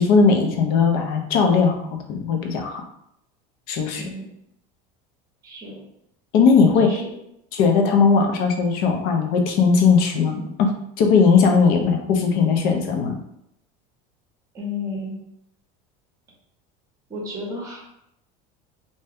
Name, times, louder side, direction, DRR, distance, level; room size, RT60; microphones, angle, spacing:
voice 1, 0.0-1.8 2.1-2.8 3.7-4.0 6.3-7.0 7.5-13.2, left 5 dB, 50° left, 4 dB, 0.6 m, -18 dB
voice 2, 3.9-4.3 5.4-5.8 6.8-7.1 14.5-15.2 17.1-17.8, left 2 dB, 15° right, -2 dB, 0.8 m, -32 dB
2.7 x 2.2 x 3.4 m, 0.76 s
cardioid pair, 160°, 19 cm